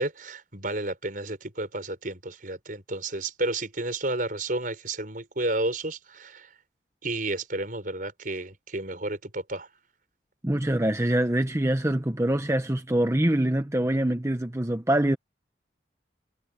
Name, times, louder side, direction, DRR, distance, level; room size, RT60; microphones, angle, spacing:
voice 1, 0.0-6.5 7.0-9.7, right 2 dB, 45° right, 5.7 m, -31 dB
voice 2, 10.4-15.2, right 1 dB, 15° right, 0.9 m, -24 dB
head